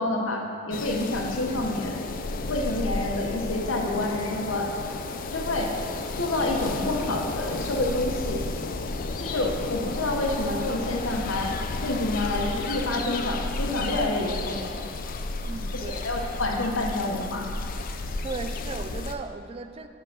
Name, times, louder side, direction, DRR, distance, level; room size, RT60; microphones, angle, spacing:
voice 1, 0.0-2.0 2.5-4.7 5.3-5.7 6.1-8.4 9.2-11.5 11.8-14.7 15.7-17.5, left 2 dB, 90° left, 1 dB, 1.0 m, -28 dB
sound 1, 0.7-19.1, left 3 dB, 45° left, 0.4 m, -32 dB
voice 2, 15.5-16.3 18.2-19.9, right 3 dB, 30° right, 9 dB, 0.3 m, -36 dB
9.6 x 3.8 x 5.9 m, 2.4 s
head